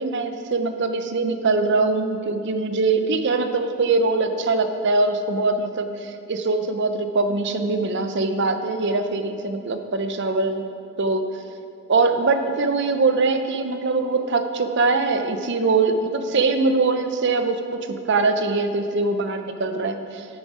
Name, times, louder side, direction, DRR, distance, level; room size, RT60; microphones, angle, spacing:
voice 1, 0.0-10.6 11.0-11.3 11.9-20.3, right 3 dB, 55° right, 8 dB, 0.6 m, -22 dB
9.4 x 8.8 x 4.8 m, 2.5 s
head